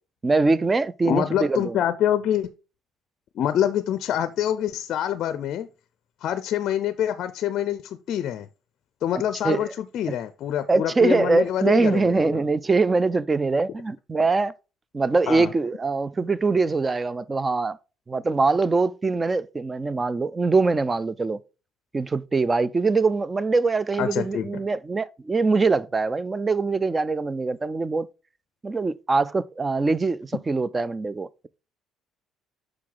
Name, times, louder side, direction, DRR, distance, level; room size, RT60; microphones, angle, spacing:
voice 1, 0.2-1.8 9.4-9.6 10.7-14.5 14.9-17.8 18.1-21.4 21.9-28.1 28.6-31.3, right 3 dB, 20° right, 0.3 m, -23 dB
voice 2, 1.1-2.5 3.4-5.7 6.2-8.5 9.0-12.4 15.3-15.5 24.0-24.5, left 10 dB, 55° left, 0.4 m, -26 dB
6.1 x 4.7 x 3.7 m
cardioid pair, 130°, 0 cm